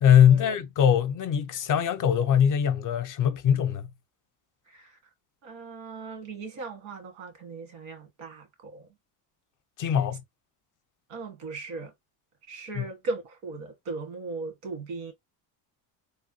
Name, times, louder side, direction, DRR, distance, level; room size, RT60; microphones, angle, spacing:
voice 1, 0.0-3.9 9.8-10.2 12.8-12.9, left 9 dB, 45° left, 0.5 m, -21 dB
voice 2, 4.7-5.0 5.4-8.9 11.1-11.9 12.5-15.1, right 3 dB, 85° right, 1.6 m, -38 dB
3.3 x 2.2 x 2.7 m
cardioid pair, 100°, 47 cm